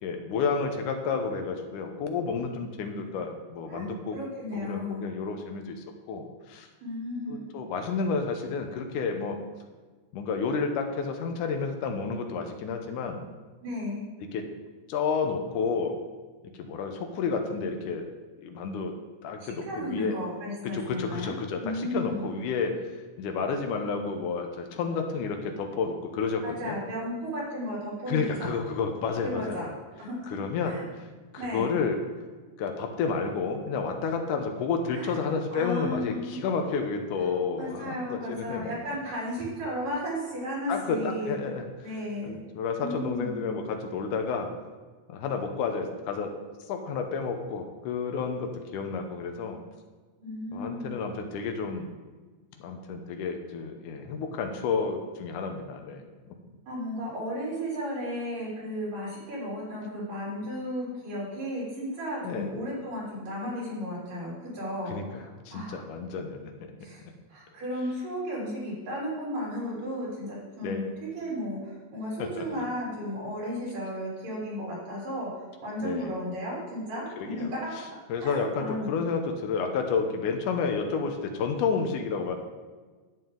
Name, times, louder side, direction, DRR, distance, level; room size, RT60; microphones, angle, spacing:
voice 1, 0.0-4.2 4.5-6.7 7.3-9.4 10.1-13.2 14.2-14.5 14.9-16.0 16.6-18.1 18.4-18.9 19.2-20.1 20.6-26.8 28.1-29.7 30.3-31.1 31.3-32.0 32.6-38.7 40.7-41.9 42.2-44.5 45.1-46.4 46.7-49.6 50.5-51.9 52.6-56.1 62.2-62.5 64.9-66.5 70.6-70.9 72.2-72.5 75.8-76.1 77.2-82.4, left 5 dB, 75° left, 5 dB, 2.3 m, -31 dB
voice 2, 3.7-5.1 6.8-7.5 13.6-14.0 19.4-21.3 21.6-22.3 26.4-28.5 29.2-29.7 30.0-30.2 30.6-30.8 31.4-31.7 34.9-36.4 37.2-37.3 37.6-41.3 41.8-42.3 42.8-43.4 50.2-50.9 56.7-65.2 65.5-65.8 66.8-67.0 67.3-77.7 78.2-79.0, equal, 80° right, -6 dB, 5.1 m, -34 dB
11.0 x 8.2 x 3.8 m, 1.3 s
omnidirectional pair, 3.7 m